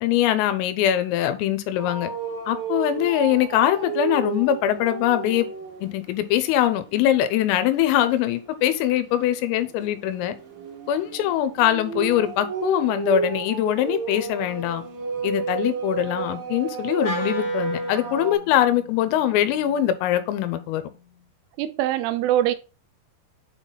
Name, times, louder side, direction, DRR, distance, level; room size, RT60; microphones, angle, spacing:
voice 1, 0.0-2.1 2.5-5.5 5.8-10.4 10.9-14.8 15.2-20.8, left 11 dB, 90° left, 3.5 m, -22 dB
sound 1, 1.8-5.9 6.4-6.7 9.1-18.3, right 5 dB, 55° right, 1.3 m, -31 dB
Wind instrument woodwind instrument, 17.0-21.3, left 1 dB, 70° left, 1.5 m, -39 dB
voice 2, 21.6-22.5, right 12 dB, 85° right, 2.9 m, -22 dB
7.6 x 4.2 x 3.8 m
omnidirectional pair, 5.8 m